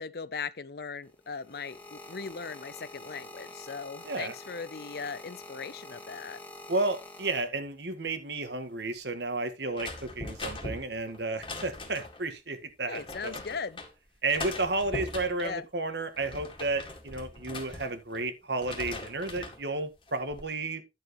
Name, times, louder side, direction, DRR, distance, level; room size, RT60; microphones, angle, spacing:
voice 1, 0.0-6.4 12.9-13.8 15.4-15.7, left 5 dB, 60° left, 0.6 m, -39 dB
sound 1, 1.0-7.9 8.7-9.0, left 2 dB, 10° left, 1.8 m, -47 dB
voice 2, 6.7-13.4 14.2-20.8, right 3 dB, 70° right, 1.7 m, -32 dB
sound 2, 9.7-12.2 12.9-13.9 14.3-15.5 16.0-18.2 18.5-19.6 20.1-20.5, left 2 dB, 30° left, 2.1 m, -41 dB
11.0 x 7.5 x 3.1 m
head